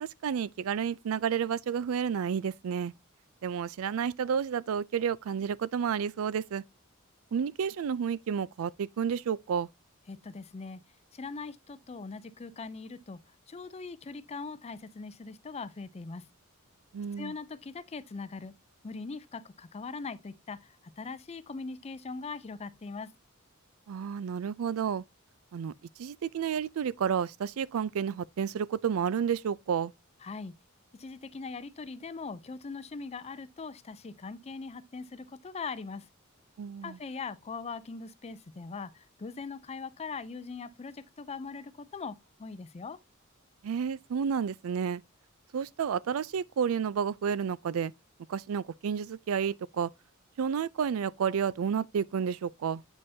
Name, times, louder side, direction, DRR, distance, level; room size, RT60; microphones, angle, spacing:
voice 1, 0.0-2.9 3.4-6.6 7.3-9.7 16.9-17.3 23.9-25.0 25.5-25.7 26.0-29.9 36.6-37.0 43.6-45.0 45.5-47.9 48.3-49.9 50.4-52.8, right 7 dB, 75° right, 0.4 m, -31 dB
voice 2, 10.1-10.8 11.1-16.3 17.2-18.5 18.8-20.6 21.0-23.1 30.2-30.6 31.0-36.1 36.8-43.0, left 4 dB, 30° left, 0.4 m, -41 dB
8.2 x 5.4 x 2.7 m
head